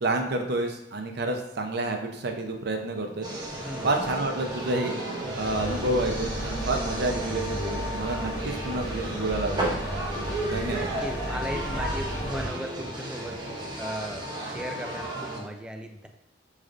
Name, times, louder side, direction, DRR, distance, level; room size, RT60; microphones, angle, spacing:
voice 1, 0.0-3.3 3.8-4.9 5.4-9.7 10.4-10.9, right 2 dB, 55° right, 4 dB, 0.6 m, -29 dB
sound 1, 3.2-15.4, right 1 dB, 20° right, 0.7 m, -34 dB
sound 2, 5.4-12.5, equal, 60° left, 1.4 m, -34 dB
voice 2, 10.6-13.4 13.8-16.1, equal, 5° right, 4 dB, 0.3 m, -37 dB
6.3 x 3.2 x 2.5 m, 0.85 s
head